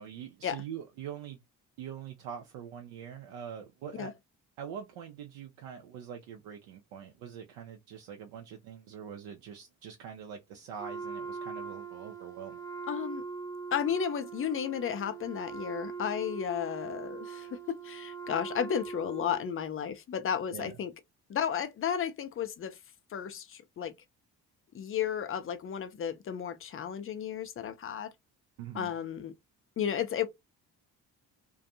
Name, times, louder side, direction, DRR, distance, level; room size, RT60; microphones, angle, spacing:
voice 1, 0.0-1.4 1.8-4.1 4.6-12.6 20.5-20.8 28.6-28.9, right 8 dB, 65° right, 0.6 m, -44 dB
Wind instrument woodwind instrument, 10.8-19.6, right 5 dB, 5° left, 0.8 m, -41 dB
voice 2, 12.9-13.2 13.7-20.9 21.3-22.8 23.1-23.9 24.7-28.1 28.7-29.3 29.8-30.3, left 8 dB, 30° left, 0.4 m, -33 dB
2.5 x 2.2 x 2.7 m
figure-of-eight pair, 40°, 48 cm